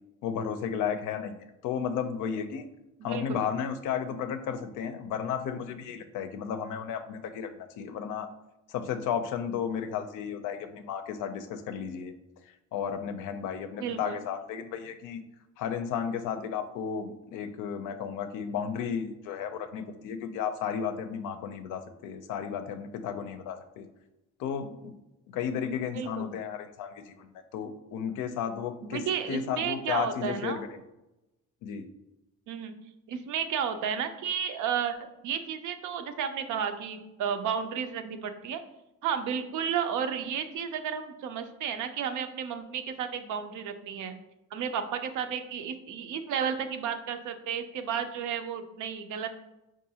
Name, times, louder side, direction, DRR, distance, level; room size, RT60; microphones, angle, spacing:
voice 1, 0.2-2.7 3.0-8.3 8.7-12.1 12.7-15.2 15.6-23.9 24.4-24.9 25.3-30.8 31.6-31.9, left 7 dB, 85° left, 8 dB, 0.5 m, -33 dB
voice 2, 3.0-3.5 13.8-14.2 25.9-26.3 28.8-30.6 32.5-32.7 33.1-38.6 39.0-44.1 44.5-49.4, right 7 dB, 80° right, 8 dB, 0.5 m, -32 dB
4.7 x 2.5 x 2.7 m, 0.94 s
cardioid pair, 90°, 30 cm